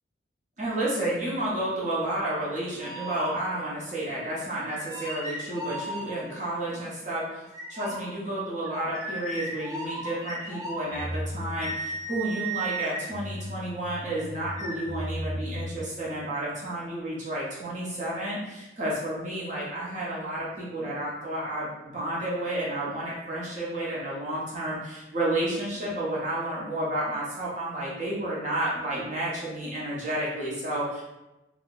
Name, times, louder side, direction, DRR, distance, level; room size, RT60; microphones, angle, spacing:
voice 1, 0.6-7.4 7.7-31.0, right 1 dB, 40° right, -6 dB, 1.0 m, -31 dB
sound 1, 2.8-3.8 4.6-6.5 7.5-15.8, right 1 dB, 20° right, 0.5 m, -36 dB
2.8 x 2.3 x 3.8 m, 0.99 s
head